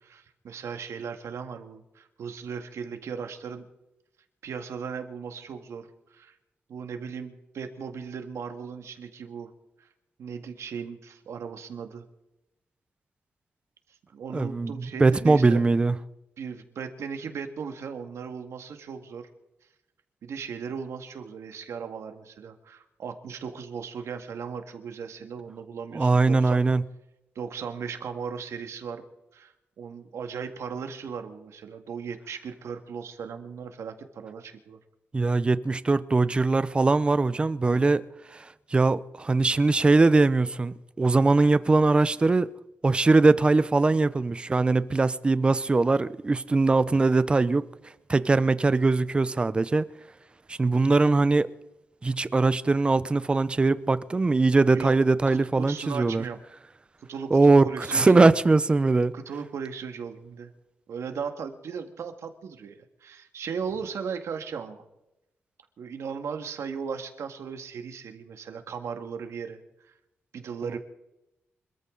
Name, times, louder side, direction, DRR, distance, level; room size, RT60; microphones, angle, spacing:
voice 1, 0.0-3.7 4.4-6.4 6.7-9.5 9.8-9.9 10.2-12.1 14.1-15.6 16.4-19.3 20.2-26.6 27.4-29.0 29.3-34.8 37.7-37.9 54.7-54.9 55.3-56.4 57.1-58.3 59.1-60.5 60.9-64.8 65.8-69.6 69.9-70.0 70.3-70.8, right 6 dB, 85° right, 1.9 m, -37 dB
voice 2, 14.3-16.0 25.9-26.8 35.1-38.0 38.3-42.5 42.8-47.7 48.1-49.9 50.5-51.5 52.0-56.2 57.3-59.1, right 3 dB, 20° right, 0.6 m, -21 dB
25.5 x 14.0 x 3.9 m
wide cardioid pair, 165°, 5 cm